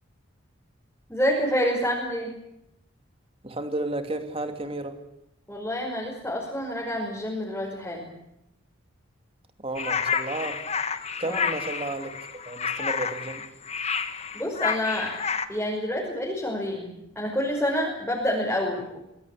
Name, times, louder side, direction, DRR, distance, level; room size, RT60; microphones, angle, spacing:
voice 1, 1.1-2.3 5.5-8.1 11.2-11.4 14.3-15.2 15.5-19.0, equal, 10° left, -4 dB, 5.6 m, -28 dB
voice 2, 3.4-5.0 9.6-10.6 11.2-12.1 12.5-13.4, right 2 dB, 25° right, 7 dB, 2.8 m, -32 dB
sound 1, 9.8-15.5, left 6 dB, 30° left, 1.5 m, -30 dB
24.5 x 21.0 x 8.6 m, 0.84 s
head